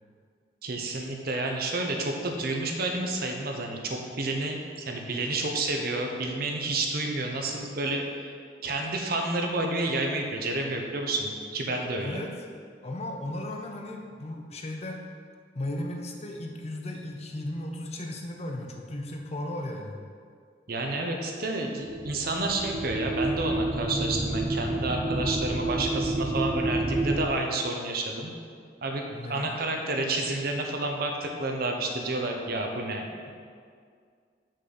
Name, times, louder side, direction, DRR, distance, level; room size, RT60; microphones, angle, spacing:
voice 1, 0.6-8.3 8.6-12.3 20.7-28.3 28.8-33.1, right 2 dB, 55° right, 2 dB, 0.8 m, -30 dB
voice 2, 12.0-12.3 12.8-15.0 15.5-20.0 29.1-29.5, left 1 dB, 35° left, 2 dB, 0.6 m, -35 dB
sound 1, 21.9-27.3, right 2 dB, 20° right, 0.4 m, -29 dB
6.4 x 4.0 x 5.9 m, 2.1 s
head